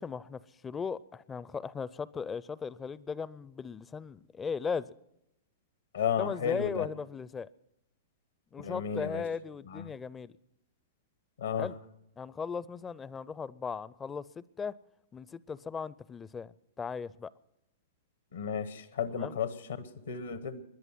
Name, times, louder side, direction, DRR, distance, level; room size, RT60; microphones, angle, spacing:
voice 1, 0.0-4.9 6.2-7.5 8.5-10.3 11.6-11.8 12.2-14.7 15.1-17.3 19.2-19.4, left 5 dB, 20° left, 0.5 m, -37 dB
voice 2, 5.9-6.9 8.6-9.2 9.7-9.8 11.4-11.7 18.3-20.6, left 7 dB, 80° left, 1.2 m, -33 dB
21.0 x 11.0 x 5.9 m
figure-of-eight pair, 105°, 0 cm